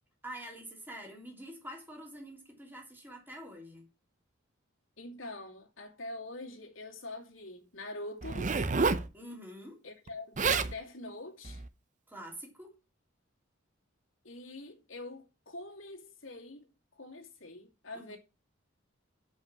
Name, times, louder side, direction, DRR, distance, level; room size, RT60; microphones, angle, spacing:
voice 1, 0.2-3.9 9.1-9.8 12.1-12.7 17.9-18.2, right 1 dB, 10° right, 3.2 m, -46 dB
voice 2, 5.0-8.5 9.8-11.6 14.2-16.7 16.9-18.2, left 2 dB, 75° left, 2.5 m, -44 dB
Zipper (clothing), 8.2-9.1 10.1-10.2 10.4-10.7 11.4-11.7, right 4 dB, 40° right, 0.7 m, -29 dB
7.3 x 5.7 x 7.3 m
head